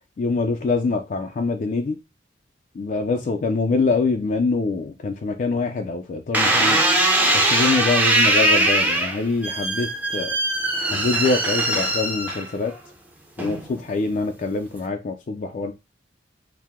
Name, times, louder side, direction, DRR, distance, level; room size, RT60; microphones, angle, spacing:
voice 1, 0.2-2.0 2.8-6.8 7.3-9.9 10.1-10.3 10.9-12.7 13.4-15.7, left 3 dB, 45° left, 0.3 m, -24 dB
sound 1, 6.3-12.7 13.4-13.9, right 1 dB, 10° right, 0.5 m, -21 dB
4.5 x 2.0 x 3.5 m
head